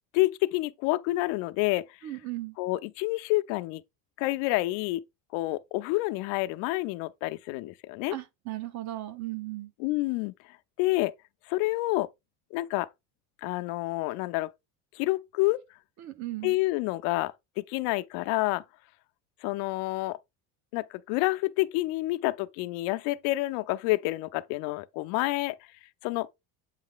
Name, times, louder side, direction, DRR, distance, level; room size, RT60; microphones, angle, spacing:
voice 1, 0.1-1.8 2.6-3.8 4.2-5.0 5.3-8.2 9.8-10.3 10.8-11.1 11.5-12.1 12.5-12.9 13.4-14.5 14.9-15.6 16.4-18.6 19.4-20.2 20.7-25.5 26.0-26.3, left 19 dB, 85° left, 0.6 m, -28 dB
voice 2, 2.0-2.6 8.1-9.7 16.0-16.6, right 16 dB, 55° right, 1.0 m, -36 dB
8.2 x 3.2 x 3.7 m
cardioid pair, 130°, 34 cm